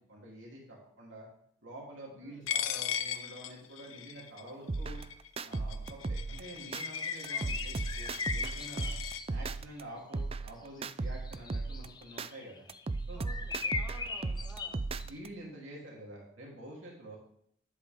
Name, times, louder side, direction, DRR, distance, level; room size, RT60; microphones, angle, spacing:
voice 1, 0.1-1.3 1.6-5.0 5.4-8.9 9.3-12.7 13.1-13.2 15.0-17.2, right 1 dB, 65° right, -3 dB, 3.3 m, -48 dB
Coin (dropping), 2.5-9.2, left 9 dB, 70° left, 0.7 m, -39 dB
sound 1, 4.7-6.8 7.2-9.8 10.1-12.3 12.7-15.3, right 3 dB, 30° right, 0.4 m, -36 dB
sound 2, 6.7-9.5 11.1-12.8 13.1-15.1, left 4 dB, 20° left, 0.7 m, -38 dB
voice 2, 7.3-7.6 7.9-8.2 13.1-14.8, right 1 dB, 5° right, -3 dB, 2.7 m, -54 dB
12.0 x 10.0 x 3.7 m, 0.67 s
head